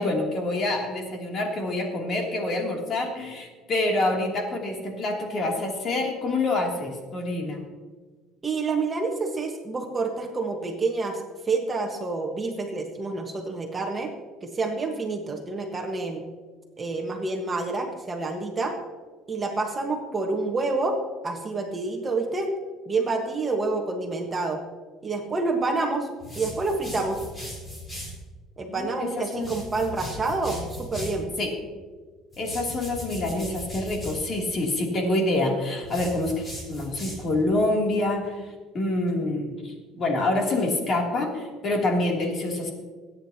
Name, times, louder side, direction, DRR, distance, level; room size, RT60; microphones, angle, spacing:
voice 1, 0.0-7.6 28.7-29.5 31.4-31.6 32.4-42.7, left 2 dB, 40° left, 0 dB, 2.9 m, -27 dB
voice 2, 8.4-14.1 14.4-16.2 16.8-18.7 19.3-21.0 21.2-22.5 22.9-24.6 25.0-26.1 26.3-27.2 28.6-31.3, right 3 dB, 20° right, 2 dB, 1.4 m, -28 dB
sound 1, 26.2-28.2 29.3-31.2 32.3-34.2 35.8-37.4, left 1 dB, 20° left, 4.1 m, -38 dB
22.5 x 9.4 x 2.9 m, 1.4 s
cardioid pair, 135°, 0 cm